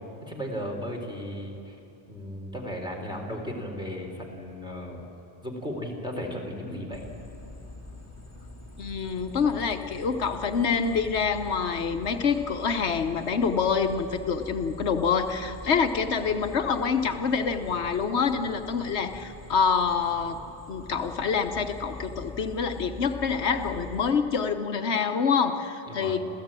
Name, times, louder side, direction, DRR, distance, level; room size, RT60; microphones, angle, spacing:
voice 1, 0.2-1.8 2.1-5.0 5.4-7.0 25.9-26.2, equal, 5° right, 0 dB, 3.7 m, -35 dB
sound 1, 6.9-24.1, left 2 dB, 15° left, 2.3 m, -44 dB
voice 2, 8.8-20.4 20.7-26.2, left 5 dB, 80° left, 7 dB, 1.3 m, -26 dB
27.0 x 15.0 x 8.9 m, 3.0 s
omnidirectional pair, 1.1 m